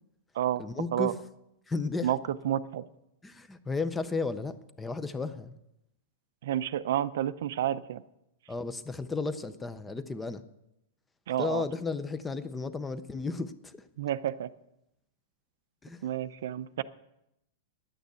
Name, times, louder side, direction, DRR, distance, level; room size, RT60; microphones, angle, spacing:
voice 1, 0.6-1.1 1.7-2.1 3.2-5.6 8.5-10.4 11.4-13.9 15.8-16.1, left 3 dB, 5° left, 13 dB, 0.4 m, -34 dB
voice 2, 2.4-2.8 6.4-8.0 11.3-11.6 14.0-14.5 16.0-16.8, right 11 dB, 60° right, 15 dB, 0.5 m, -30 dB
10.5 x 8.8 x 8.1 m, 0.85 s
supercardioid pair, 175°, 0 cm